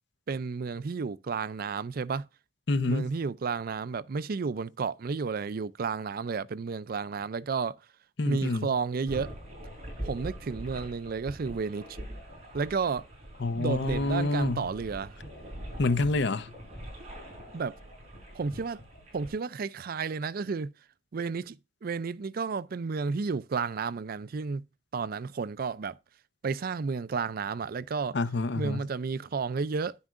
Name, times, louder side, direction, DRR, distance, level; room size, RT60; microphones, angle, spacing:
voice 1, 0.3-2.3 2.9-7.8 8.3-9.3 10.0-12.0 12.5-13.1 13.6-15.2 17.5-17.8 18.3-18.8 19.1-20.7 21.1-24.6 24.9-26.0 26.4-28.2 28.5-30.0, right 5 dB, 55° right, 0.4 m, -32 dB
voice 2, 2.7-3.1 8.2-8.7 13.4-14.7 15.8-16.5 28.1-28.8, left 3 dB, 70° left, 0.8 m, -28 dB
sound 1, 9.1-19.3, equal, 35° right, 5.8 m, -43 dB
10.5 x 9.5 x 2.5 m
head